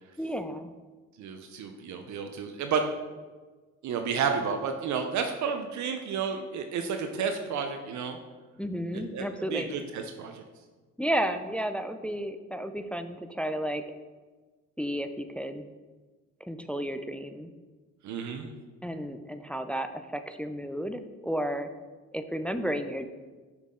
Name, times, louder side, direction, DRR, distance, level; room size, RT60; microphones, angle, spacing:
voice 1, 0.2-0.7 8.6-9.7 11.0-13.8 14.8-15.7 16.4-17.5 18.8-21.7 22.1-23.1, equal, 5° left, 8 dB, 0.3 m, -32 dB
voice 2, 1.2-2.8 3.8-8.2 8.9-10.4 18.0-18.5, right 6 dB, 70° right, 6 dB, 0.7 m, -31 dB
6.1 x 5.6 x 3.7 m, 1.3 s
cardioid pair, 90°, 30 cm